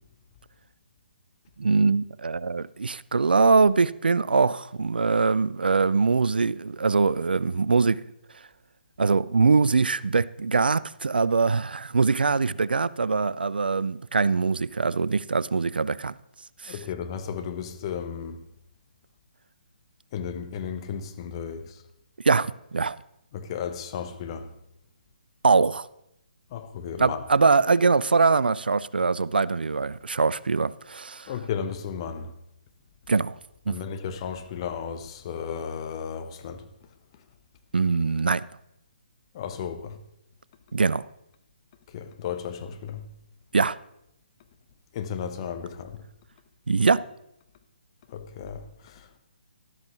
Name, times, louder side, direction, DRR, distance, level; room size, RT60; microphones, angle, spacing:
voice 1, 1.6-8.0 9.0-16.1 16.6-16.7 22.2-23.0 25.4-25.9 27.0-31.3 33.1-33.4 33.7-33.8 37.7-38.4 40.7-41.1 43.5-43.8 46.7-47.0, right 4 dB, 70° right, 0.3 m, -22 dB
voice 2, 16.7-18.4 20.1-21.8 23.3-24.5 26.5-27.2 31.3-32.3 33.7-36.7 39.3-40.0 41.9-43.1 44.9-46.0 48.1-49.2, left 7 dB, 30° left, 0.9 m, -34 dB
12.5 x 12.5 x 3.0 m
figure-of-eight pair, 135°, 5 cm